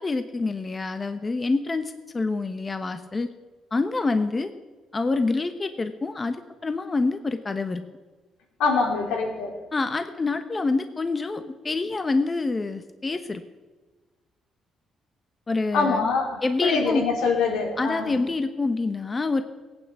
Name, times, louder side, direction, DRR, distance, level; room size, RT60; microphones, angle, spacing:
voice 1, 0.0-3.3 3.7-4.5 4.9-6.4 6.6-7.8 9.7-13.4 15.5-16.1 16.4-17.0 17.8-19.4, left 3 dB, 25° left, 9 dB, 1.0 m, -26 dB
voice 2, 8.6-9.5 15.7-18.1, left 4 dB, 90° left, 1 dB, 3.7 m, -24 dB
17.0 x 9.0 x 8.1 m, 1.3 s
cardioid pair, 90°, 0 cm